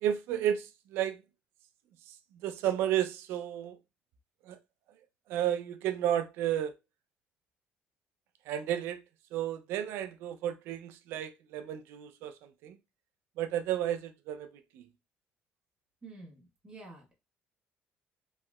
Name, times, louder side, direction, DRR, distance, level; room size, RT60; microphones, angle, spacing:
voice 1, 0.0-1.2 2.3-3.8 4.5-4.6 5.3-6.7 8.5-9.0 9.3-12.3 12.6-12.8 13.4-14.5 14.7-14.8, right 11 dB, 85° right, 0.4 m, -32 dB
voice 2, 16.0-17.1, right 3 dB, 25° right, 1.1 m, -49 dB
3.1 x 2.7 x 2.2 m
cardioid pair, 135°, 4 cm